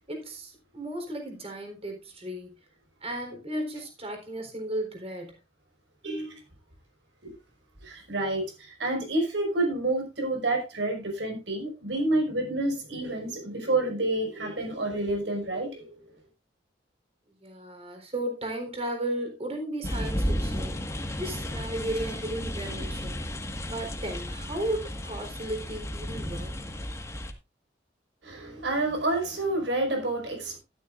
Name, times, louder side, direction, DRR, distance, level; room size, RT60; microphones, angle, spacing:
voice 1, 0.1-2.5 3.0-5.4 17.4-20.8 21.2-23.2 23.7-26.5, right 1 dB, 35° right, 4.0 m, -34 dB
voice 2, 6.0-6.4 7.2-7.3 7.8-16.0 28.2-30.6, right 2 dB, 75° right, 5.5 m, -29 dB
sound 1, 19.8-27.3, equal, 15° left, 1.6 m, -33 dB
13.0 x 12.5 x 2.5 m
head